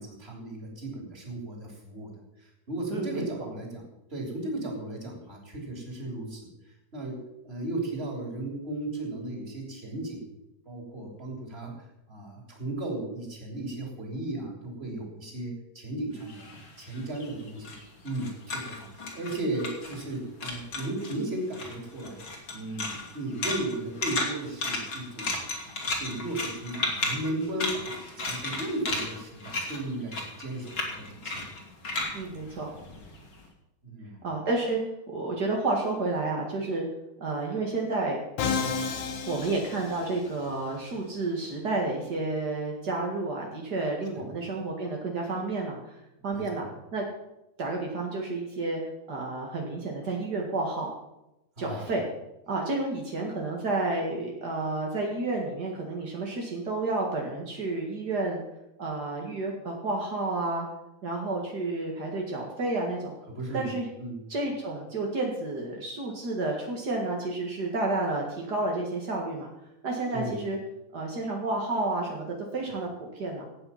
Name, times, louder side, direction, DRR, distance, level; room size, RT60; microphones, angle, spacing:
voice 1, 0.0-2.1 2.4-3.8 4.1-6.5 6.9-7.2 7.4-10.3 10.6-11.7 12.1-16.5 16.8-17.7 18.0-22.2 22.5-25.4 25.7-27.9 28.2-30.9 31.2-31.4 33.8-34.2 44.1-44.3 46.3-46.7 51.6-51.9 63.3-63.7 64.0-64.2 70.1-70.4, right 2 dB, 15° right, 1 dB, 2.9 m, -35 dB
voice 2, 2.9-3.2 32.1-32.7 34.2-34.8 35.1-36.9 37.2-38.2 39.3-46.0 46.2-47.0 47.6-48.8 49.1-50.9 51.6-52.0 52.5-58.4 58.8-60.7 61.0-63.1 63.5-63.9 64.3-69.5 69.8-70.6 70.9-73.4, right 2 dB, 50° right, -1 dB, 1.1 m, -30 dB
sound 1, 16.2-20.2 20.4-21.2 21.5-33.3, left 3 dB, 35° left, 2.6 m, -34 dB
Musical instrument, 38.4-40.5, left 5 dB, 65° left, 2.0 m, -31 dB
17.0 x 9.0 x 5.7 m, 0.91 s
omnidirectional pair, 4.9 m